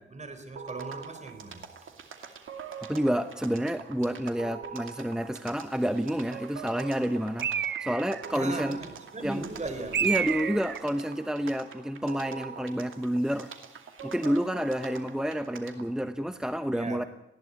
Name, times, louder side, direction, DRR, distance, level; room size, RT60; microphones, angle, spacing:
voice 1, 0.0-1.9 8.3-10.1 16.7-17.1, right 2 dB, 35° right, 8 dB, 3.8 m, -38 dB
sound 1, 0.6-15.9, right 6 dB, 85° right, 2.5 m, -44 dB
voice 2, 2.9-8.8 9.2-9.4 10.0-13.5 14.0-17.0, equal, 5° right, 9 dB, 0.9 m, -29 dB
Bird, 7.4-8.3 9.9-10.9, right 8 dB, 60° right, 0.7 m, -29 dB
20.0 x 15.5 x 9.6 m, 0.89 s
wide cardioid pair, 100°, 20 cm